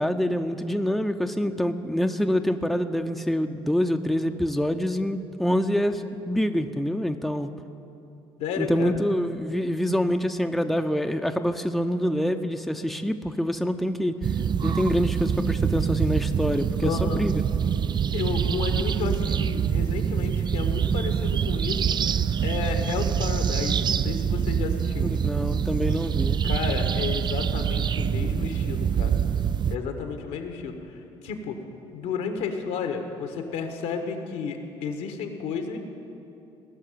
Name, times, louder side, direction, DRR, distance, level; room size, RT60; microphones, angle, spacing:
voice 1, 0.0-7.5 8.6-14.1 14.6-17.3 25.0-26.4, equal, ahead, 6 dB, 0.7 m, -26 dB
voice 2, 8.4-9.0 16.8-17.2 18.1-22.0 22.4-25.1 26.4-29.2 29.7-30.9 31.2-31.6 31.9-35.8, left 5 dB, 75° left, 5 dB, 1.5 m, -32 dB
sound 1, 14.2-29.8, right 8 dB, 35° right, 0.4 m, -25 dB
18.5 x 6.5 x 9.1 m, 2.8 s
hypercardioid pair, 55°, 13 cm